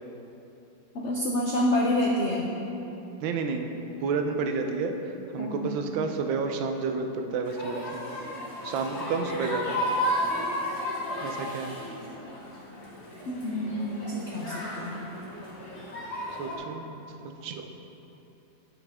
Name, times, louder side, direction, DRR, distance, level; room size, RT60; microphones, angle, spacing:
voice 1, 0.9-2.5 5.4-5.7 13.3-15.0, left 1 dB, 75° left, -2 dB, 0.6 m, -28 dB
voice 2, 3.2-8.0 8.6-9.8 11.2-11.7 16.4-17.0 17.4-17.7, right 4 dB, 85° right, 5 dB, 1.4 m, -30 dB
sound 1, 7.4-16.6, left 1 dB, 40° left, 2.0 m, -33 dB
9.4 x 5.8 x 3.5 m, 2.9 s
omnidirectional pair, 2.0 m